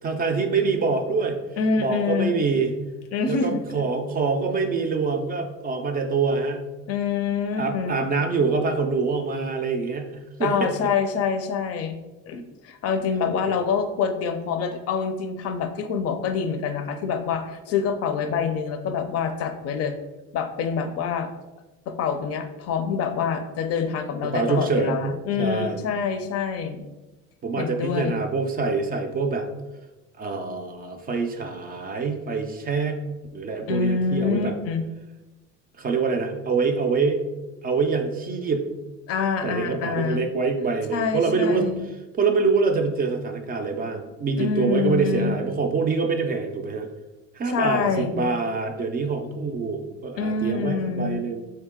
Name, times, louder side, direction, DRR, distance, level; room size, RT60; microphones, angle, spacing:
voice 1, 0.0-1.4 1.8-2.7 3.3-6.7 7.6-10.7 13.5-13.6 24.2-25.8 27.4-29.5 30.2-33.0 33.3-34.5 35.8-37.2 37.6-38.7 39.4-41.7 42.1-46.9 47.3-51.4, right 4 dB, 30° right, 4 dB, 0.4 m, -25 dB
voice 2, 1.6-2.3 3.1-3.6 6.9-8.0 10.4-12.0 12.3-19.9 20.3-21.3 21.9-26.8 27.6-28.2 33.7-34.8 39.1-40.2 40.9-41.8 44.4-45.4 47.5-48.2 50.2-51.2, left 6 dB, 55° left, 7 dB, 0.5 m, -26 dB
3.7 x 2.8 x 3.6 m, 1.1 s
cardioid pair, 130°, 29 cm